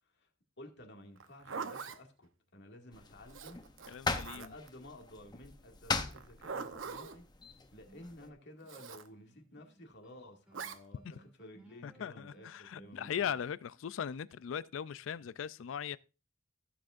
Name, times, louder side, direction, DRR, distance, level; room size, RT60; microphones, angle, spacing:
voice 1, 0.6-3.6 4.3-7.3 7.7-13.4, left 1 dB, 60° left, 2.1 m, -53 dB
Zipper (clothing), 1.2-2.0 3.3-4.7 6.1-7.2 8.7-9.1 10.5-10.8, right 5 dB, 80° right, 0.8 m, -43 dB
sound 1, 2.9-8.3, left 3 dB, 20° left, 0.8 m, -40 dB
voice 2, 3.9-4.5 11.8-16.0, left 8 dB, 85° left, 0.4 m, -39 dB
sound 2, 7.4-14.4, right 1 dB, 5° right, 1.7 m, -64 dB
15.5 x 7.6 x 2.5 m
head